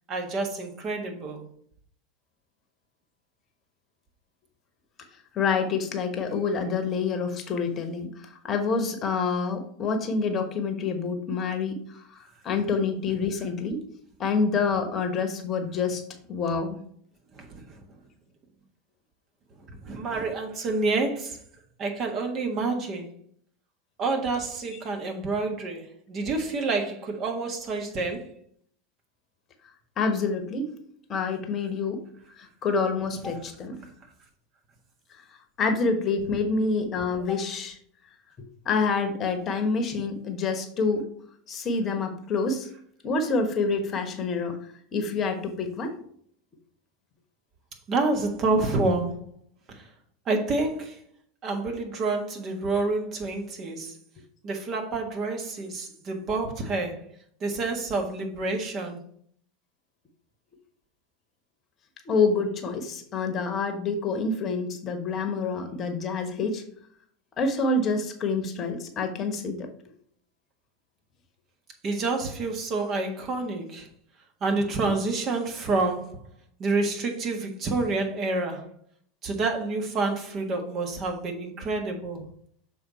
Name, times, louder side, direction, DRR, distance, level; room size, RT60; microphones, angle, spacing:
voice 1, 0.1-1.4 17.3-17.8 19.8-21.4 21.8-23.1 24.0-28.3 47.9-49.2 49.7-49.9 50.2-51.0 51.4-54.0 54.4-57.0 57.4-59.0 71.8-73.9 74.4-76.2 76.6-78.7 79.2-82.3, right 3 dB, 40° right, 1.4 m, -28 dB
voice 2, 5.3-12.2 12.4-13.8 14.2-16.0 16.3-16.8 30.0-30.7 31.1-32.0 32.4-33.8 35.6-37.8 38.4-41.0 41.5-42.7 43.0-44.6 44.9-45.9 62.1-66.6 67.4-69.7, left 4 dB, 35° left, 1.1 m, -27 dB
6.7 x 4.0 x 4.2 m
figure-of-eight pair, 80°, 0 cm